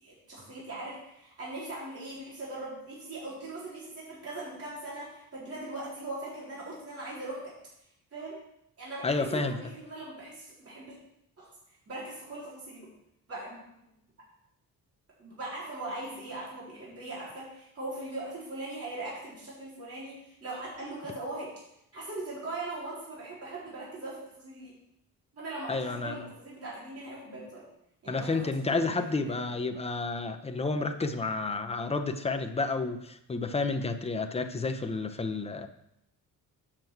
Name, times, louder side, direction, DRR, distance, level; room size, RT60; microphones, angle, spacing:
voice 1, 0.0-7.5 8.1-8.4 8.8-11.0 11.4-11.5 11.9-12.9 13.3-13.6 15.2-21.5 21.9-24.8 25.3-27.7 28.0-29.6, right 2 dB, 40° right, -7 dB, 4.1 m, -40 dB
voice 2, 9.0-9.6 25.7-26.3 28.1-35.7, left 3 dB, 15° left, 6 dB, 0.8 m, -30 dB
7.4 x 6.1 x 7.9 m, 0.80 s
cardioid pair, 130°, 36 cm